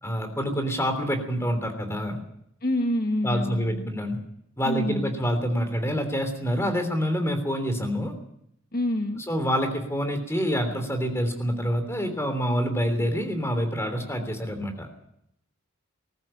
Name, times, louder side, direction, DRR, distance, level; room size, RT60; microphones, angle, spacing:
voice 1, 0.0-2.2 3.2-4.2 4.6-8.1 9.3-14.9, equal, 10° left, 6 dB, 3.2 m, -27 dB
voice 2, 2.6-3.9 4.6-5.1 8.7-9.2, left 1 dB, 45° left, 5 dB, 1.4 m, -27 dB
19.5 x 15.0 x 8.9 m, 0.75 s
head